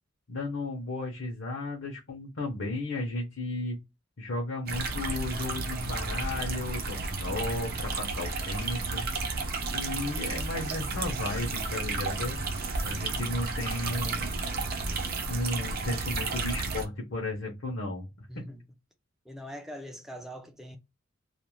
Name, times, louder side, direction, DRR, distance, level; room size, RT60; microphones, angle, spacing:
voice 1, 0.3-3.8 4.2-9.1 9.7-12.4 12.8-14.3 15.3-18.4, left 2 dB, 70° left, 0.8 m, -34 dB
sound 1, 4.7-16.8, right 3 dB, 50° right, 0.6 m, -32 dB
voice 2, 12.9-13.3 18.3-18.6 19.3-20.8, equal, ahead, 0.3 m, -43 dB
2.5 x 2.0 x 2.9 m
head